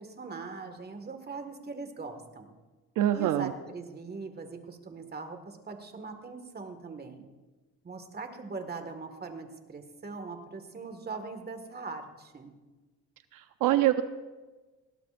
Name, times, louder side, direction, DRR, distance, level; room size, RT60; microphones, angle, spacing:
voice 1, 0.0-2.5 3.1-7.2 7.8-12.5, right 4 dB, 30° right, 6 dB, 1.9 m, -41 dB
voice 2, 3.0-3.5 13.3-14.0, right 13 dB, 80° right, 9 dB, 0.7 m, -25 dB
20.0 x 17.0 x 2.6 m, 1.2 s
cardioid pair, 95°, 32 cm